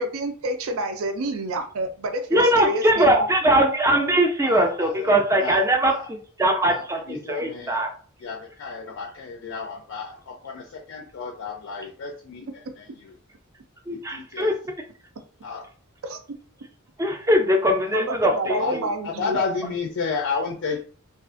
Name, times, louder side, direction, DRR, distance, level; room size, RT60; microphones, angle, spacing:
voice 1, 0.0-3.3 16.0-16.2 17.9-19.4, right 1 dB, 70° right, 6 dB, 0.5 m, -28 dB
voice 2, 2.3-7.9 13.9-14.5 17.0-18.8, right 1 dB, 15° right, 3 dB, 0.4 m, -21 dB
voice 3, 4.4-6.1 6.7-7.8 8.2-12.8 14.1-14.5 15.4-15.6 17.8-18.0 18.6-18.8 19.0-20.8, left 5 dB, 65° left, 2 dB, 0.4 m, -32 dB
2.4 x 2.4 x 2.4 m, 0.42 s
head